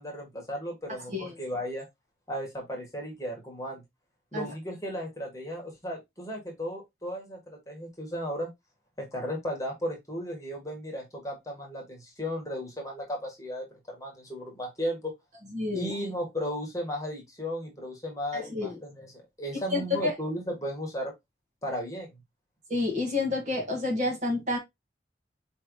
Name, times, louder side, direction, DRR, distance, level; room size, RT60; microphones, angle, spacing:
voice 1, 0.0-1.9 2.3-3.8 4.3-8.5 9.0-15.1 15.7-19.1 19.4-21.1 21.6-22.2, equal, 20° left, 1.5 m, -35 dB
voice 2, 15.5-15.9 18.3-18.7 19.7-20.1 22.7-24.6, left 2 dB, 40° right, 1.5 m, -29 dB
5.0 x 3.1 x 3.0 m
head